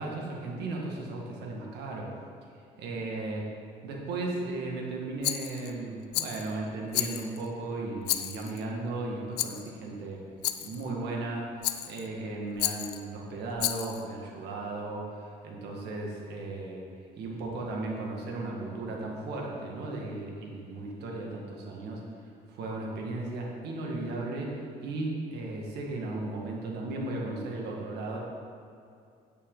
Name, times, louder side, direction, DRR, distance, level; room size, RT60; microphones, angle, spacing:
voice 1, 0.0-2.1 2.8-3.4 3.8-10.2 10.6-16.8 17.2-22.0 22.5-28.2, right 2 dB, 75° right, -1 dB, 1.8 m, -36 dB
Rattle, 5.2-5.7 6.1-6.5 6.9-7.5 8.0-8.6 9.4-9.7 10.4-10.8 11.6-12.1 12.6-13.0 13.6-14.0, left 13 dB, 75° left, 0.5 m, -32 dB
9.4 x 8.1 x 3.9 m, 2.5 s
cardioid pair, 110°, 17 cm